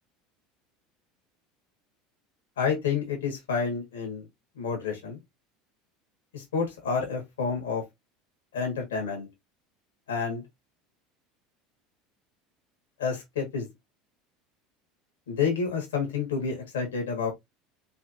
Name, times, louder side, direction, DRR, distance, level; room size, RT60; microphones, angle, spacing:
voice 1, 2.6-4.3 4.6-5.2 6.3-7.8 8.5-9.3 10.1-10.4 13.0-13.7 15.3-17.3, left 5 dB, 80° left, 1.9 m, -29 dB
4.4 x 3.3 x 2.8 m
hypercardioid pair, 75°, 0 cm